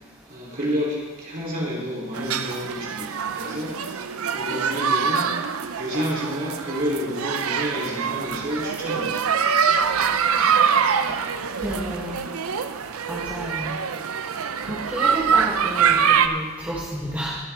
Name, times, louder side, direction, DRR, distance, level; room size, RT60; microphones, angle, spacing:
voice 1, 0.3-4.0 4.3-5.3 5.8-9.3, equal, 40° right, -4 dB, 3.5 m, -29 dB
sound 1, 2.1-16.3, right 7 dB, 80° right, 0.6 m, -24 dB
voice 2, 11.6-12.2 13.1-13.8 14.6-17.4, right 1 dB, 10° right, -6 dB, 1.3 m, -31 dB
21.0 x 7.5 x 3.6 m, 1.3 s
head